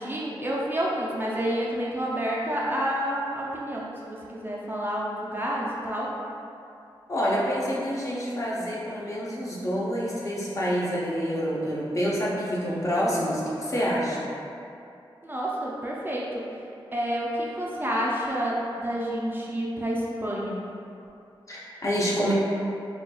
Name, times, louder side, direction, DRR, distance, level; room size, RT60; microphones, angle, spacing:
voice 1, 0.0-6.1 15.2-16.4 16.9-20.6, equal, 25° right, -5 dB, 0.4 m, -29 dB
voice 2, 7.1-14.3 21.5-22.3, equal, 35° left, -6 dB, 0.6 m, -27 dB
4.2 x 2.3 x 2.3 m, 2.6 s
wide cardioid pair, 95°, 9 cm